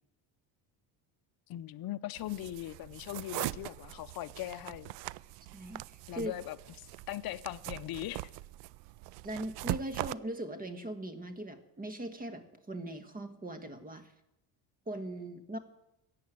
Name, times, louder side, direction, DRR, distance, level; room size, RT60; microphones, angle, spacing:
voice 1, 1.5-4.9 6.1-8.3, left 14 dB, 50° left, 0.7 m, -40 dB
sound 1, 2.2-10.1, right 18 dB, 65° right, 0.5 m, -41 dB
voice 2, 5.5-6.3 9.2-14.1 14.9-15.6, right 1 dB, 20° right, 1.5 m, -40 dB
15.0 x 8.6 x 9.1 m
cardioid pair, 115°, 46 cm